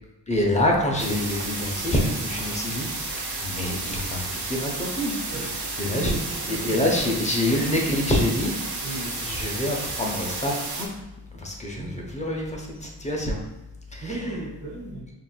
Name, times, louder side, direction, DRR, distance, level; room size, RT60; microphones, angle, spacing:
voice 1, 0.3-3.1 3.4-5.1 5.8-6.2 6.5-8.5 8.9-10.9 11.3-13.4 13.9-14.4, left 1 dB, 20° left, 0 dB, 0.6 m, -26 dB
sound 1, 1.0-10.9, right 3 dB, 80° right, 0.8 m, -32 dB
voice 2, 5.3-6.8 8.8-9.4 11.7-12.2 14.0-15.1, right 2 dB, 30° right, -7 dB, 0.8 m, -36 dB
5.5 x 2.6 x 2.3 m, 1.0 s
wide cardioid pair, 120°, 39 cm